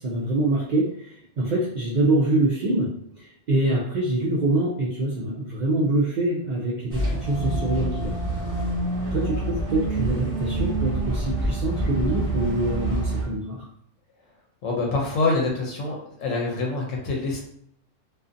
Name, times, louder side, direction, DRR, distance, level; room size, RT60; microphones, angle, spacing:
voice 1, 0.0-2.9 3.2-8.2 9.1-13.6, right 2 dB, 70° right, -4 dB, 0.4 m, -25 dB
sound 1, 6.9-13.2, right 2 dB, 30° right, 1.0 m, -26 dB
voice 2, 14.6-17.4, left 3 dB, 80° left, -1 dB, 0.9 m, -25 dB
2.5 x 2.4 x 2.5 m, 0.68 s
omnidirectional pair, 1.3 m